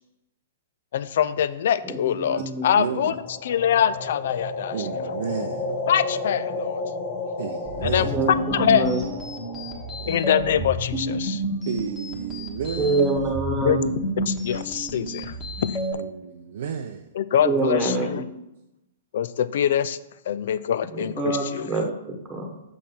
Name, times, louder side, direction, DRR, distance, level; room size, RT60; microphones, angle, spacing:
voice 1, 0.9-3.1 3.4-4.8 5.9-6.8 7.8-8.1 8.5-8.9 10.1-11.4 13.6-13.8 14.2-15.7 17.2-18.2 19.1-20.0 20.3-21.7, left 9 dB, 60° left, 0.4 m, -24 dB
voice 2, 1.8-2.7 8.0-9.0 12.8-13.9 17.4-18.3 20.9-22.5, right 3 dB, 15° right, 1.2 m, -26 dB
voice 3, 2.7-3.2 4.7-5.7 7.4-8.2 9.9-10.7 11.6-13.1 16.0-17.1, right 7 dB, 65° right, 0.5 m, -32 dB
sound 1, 3.0-11.1, left 2 dB, 40° left, 1.2 m, -33 dB
sound 2, 7.7-15.9, equal, 5° left, 1.3 m, -30 dB
6.3 x 5.4 x 4.3 m
hypercardioid pair, 155°, 0 cm